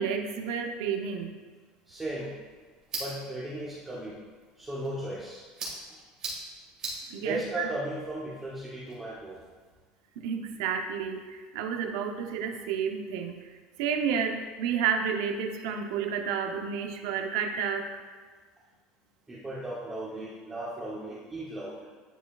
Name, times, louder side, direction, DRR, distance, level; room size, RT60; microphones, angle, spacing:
voice 1, 0.0-1.4 7.1-7.7 10.2-13.5 13.8-18.0, right 7 dB, 85° right, 5 dB, 0.6 m, -31 dB
voice 2, 1.9-2.4 3.0-4.2 4.6-5.5 7.2-9.4 19.3-21.8, right 1 dB, 10° right, -7 dB, 0.8 m, -36 dB
sound 1, 1.9-9.8, right 3 dB, 25° right, 1.8 m, -43 dB
10.0 x 4.6 x 2.3 m, 1.4 s
cardioid pair, 170°, 3 cm